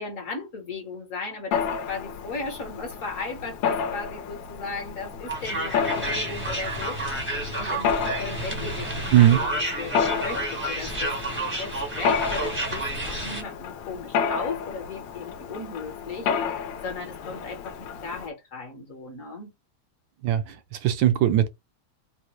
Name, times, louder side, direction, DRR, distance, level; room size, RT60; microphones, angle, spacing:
voice 1, 0.0-9.5 9.8-11.1 11.6-19.5, left 4 dB, 50° left, 1.1 m, -36 dB
Mechanisms, 1.5-18.3, left 6 dB, 75° left, 1.2 m, -31 dB
sound 1, 5.3-13.4, right 1 dB, 10° right, 0.6 m, -30 dB
voice 2, 9.1-9.4 20.2-21.5, right 11 dB, 75° right, 1.2 m, -19 dB
4.1 x 2.1 x 3.0 m
omnidirectional pair, 2.3 m